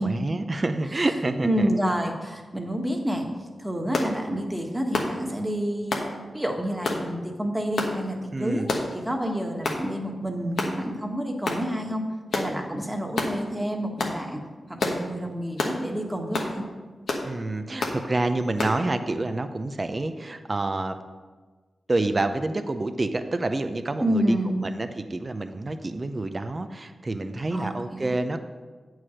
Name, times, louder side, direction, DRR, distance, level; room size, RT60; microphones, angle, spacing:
voice 1, 0.0-1.7 8.3-8.7 17.2-21.0 21.9-24.4 24.6-28.4, right 2 dB, 40° right, 8 dB, 0.7 m, -28 dB
voice 2, 1.4-3.3 3.6-6.0 6.3-8.7 8.9-12.0 12.3-14.4 14.7-16.6 24.0-24.6 27.5-28.2, equal, 10° right, 2 dB, 1.5 m, -28 dB
sound 1, 3.9-4.1 4.9-5.2 5.9-6.1 6.8-7.0 7.8-8.0 8.7-8.9 9.6-9.8 10.6-10.8 11.4-11.6 12.3-12.5 13.2-13.3 14.0-14.2 14.8-15.0 15.6-15.8 16.3-16.5 17.1-17.3 17.8-18.0 18.6-18.8, left 3 dB, 80° left, 1.1 m, -27 dB
8.4 x 4.8 x 6.3 m, 1.4 s
cardioid pair, 45°, 0 cm